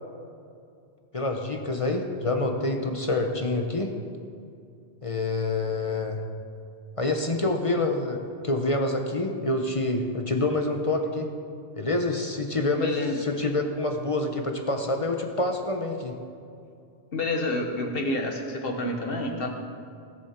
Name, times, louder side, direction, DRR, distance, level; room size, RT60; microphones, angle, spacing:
voice 1, 1.1-3.9 5.0-6.2 7.0-11.3 11.7-16.2, left 2 dB, 30° left, 4 dB, 0.9 m, -27 dB
voice 2, 12.8-13.2 17.1-19.5, left 2 dB, 55° left, 3 dB, 1.4 m, -28 dB
18.0 x 7.0 x 4.4 m, 2.5 s
omnidirectional pair, 1.2 m